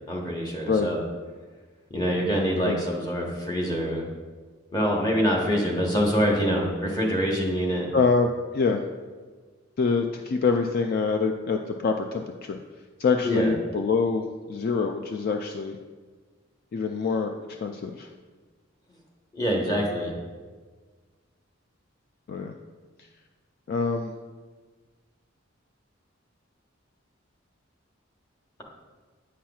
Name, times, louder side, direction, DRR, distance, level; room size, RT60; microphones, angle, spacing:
voice 1, 0.1-1.0 1.9-4.1 4.7-7.9 13.2-13.6 19.3-20.1, equal, 20° left, -1 dB, 1.0 m, -25 dB
voice 2, 7.9-8.3 8.5-8.8 9.8-12.6 13.0-15.8 16.7-17.3 17.6-18.1 22.3-22.5 23.7-24.1, left 4 dB, 50° left, 4 dB, 0.3 m, -25 dB
8.3 x 5.7 x 2.3 m, 1.4 s
head